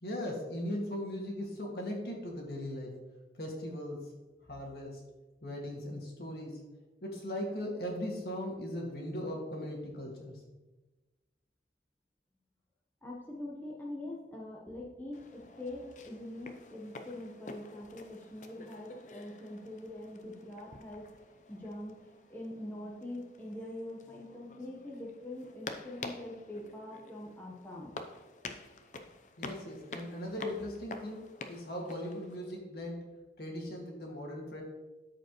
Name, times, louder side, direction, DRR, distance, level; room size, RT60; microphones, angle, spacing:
voice 1, 0.0-2.9 3.3-4.1 4.5-5.0 5.4-6.6 7.0-10.3 29.4-34.6, left 1 dB, 60° left, -2 dB, 2.0 m, -39 dB
voice 2, 13.0-21.0 21.5-22.0 22.3-28.0, left 1 dB, 10° left, -4 dB, 1.0 m, -43 dB
sound 1, 15.1-32.6, left 3 dB, 45° left, 0.6 m, -49 dB
13.0 x 5.0 x 3.1 m, 1.1 s
head